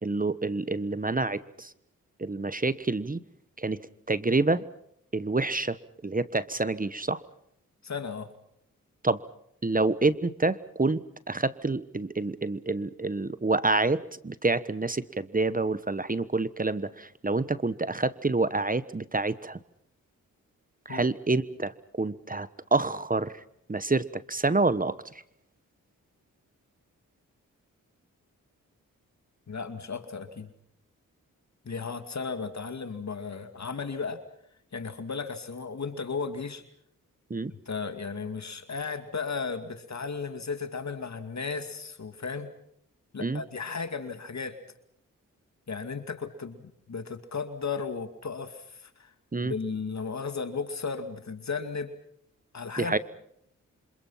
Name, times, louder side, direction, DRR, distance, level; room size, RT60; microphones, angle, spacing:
voice 1, 0.0-1.7 2.2-3.2 3.6-3.8 4.1-4.6 5.1-7.2 9.0-9.2 9.6-19.6 20.8-23.3 23.7-25.0 37.3-37.5 43.2-43.4 49.3-49.5 52.8-53.0, right 3 dB, 25° right, 16 dB, 1.2 m, -27 dB
voice 2, 7.8-8.3 20.9-21.1 29.5-30.5 31.6-34.2 34.7-36.6 37.7-42.5 43.1-44.6 45.7-49.1 49.4-51.9 52.5-53.0, left 5 dB, 55° left, 9 dB, 2.4 m, -35 dB
27.5 x 26.5 x 5.8 m, 0.71 s
supercardioid pair, 45°, 34 cm